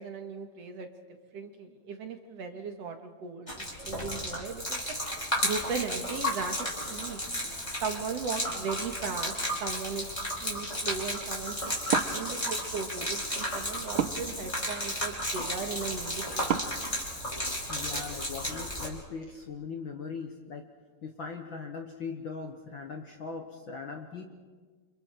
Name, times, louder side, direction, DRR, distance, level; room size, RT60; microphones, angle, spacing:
voice 1, 0.0-5.0 5.4-7.2 7.8-9.3 9.6-10.1 10.4-11.7 12.1-16.7, right 5 dB, 60° right, 5 dB, 2.6 m, -37 dB
Gurgling / Liquid, 3.5-18.9, equal, 10° left, 4.4 m, -33 dB
Wood, 11.8-17.9, right 8 dB, 90° right, 1.1 m, -37 dB
voice 2, 17.7-20.6 21.0-24.3, left 5 dB, 50° left, 4 dB, 1.6 m, -40 dB
29.5 x 27.0 x 4.6 m, 1.5 s
omnidirectional pair, 3.6 m